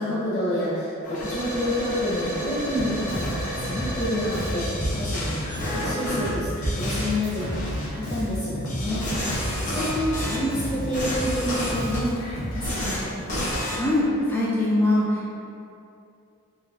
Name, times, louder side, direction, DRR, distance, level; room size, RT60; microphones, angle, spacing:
voice 1, 0.0-9.0 9.6-13.1, left 1 dB, 60° left, -17 dB, 0.9 m, -28 dB
sound 1, 1.0-6.3 6.6-7.1 7.5-7.9 8.7-10.4 10.8-12.0 12.5-13.0 13.3-13.8, equal, 35° left, 0.7 m, -31 dB
Bass guitar, 2.8-12.7, equal, 90° left, 0.6 m, -32 dB
sound 2, 7.2-7.8 9.0-9.6 10.9-11.4 12.6-13.2, right 1 dB, 85° right, 0.7 m, -40 dB
voice 2, 13.7-15.3, left 1 dB, 10° left, -6 dB, 0.3 m, -22 dB
3.1 x 2.4 x 2.3 m, 2.6 s
head